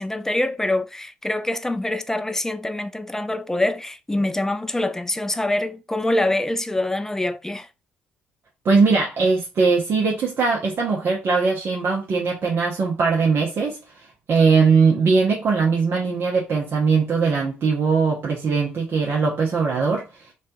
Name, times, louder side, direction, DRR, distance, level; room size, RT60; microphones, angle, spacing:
voice 1, 0.0-7.7, left 1 dB, 10° left, 0.4 m, -25 dB
voice 2, 8.6-20.3, right 4 dB, 50° right, 0.8 m, -20 dB
3.2 x 2.3 x 2.6 m
hypercardioid pair, 55°, 5 cm